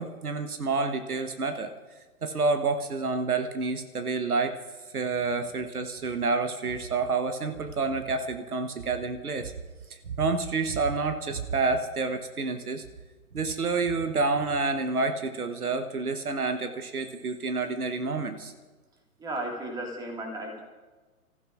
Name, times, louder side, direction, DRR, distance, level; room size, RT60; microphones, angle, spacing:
voice 1, 0.0-1.7 2.2-4.6 4.9-9.5 10.1-12.8 13.3-18.5, right 4 dB, 75° right, 7 dB, 1.2 m, -28 dB
voice 2, 19.2-20.6, right 1 dB, 10° right, 0 dB, 2.0 m, -34 dB
29.0 x 15.0 x 2.5 m, 1.3 s
figure-of-eight pair, 125°, 44 cm